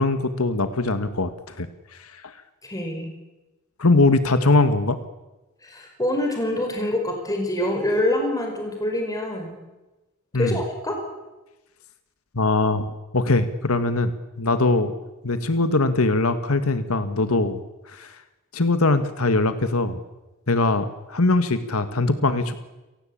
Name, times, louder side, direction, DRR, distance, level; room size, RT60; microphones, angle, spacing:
voice 1, 0.0-1.7 2.0-2.3 3.8-5.0 10.3-10.6 12.3-12.9 13.1-14.1 14.4-14.9 15.2-17.6 17.9-18.2 18.5-20.0 20.5-22.5, left 2 dB, 85° left, 10 dB, 1.7 m, -21 dB
voice 2, 2.6-3.1 5.6-9.6 10.3-11.0, left 1 dB, 15° left, 2 dB, 5.0 m, -25 dB
30.0 x 18.0 x 8.7 m, 1.1 s
head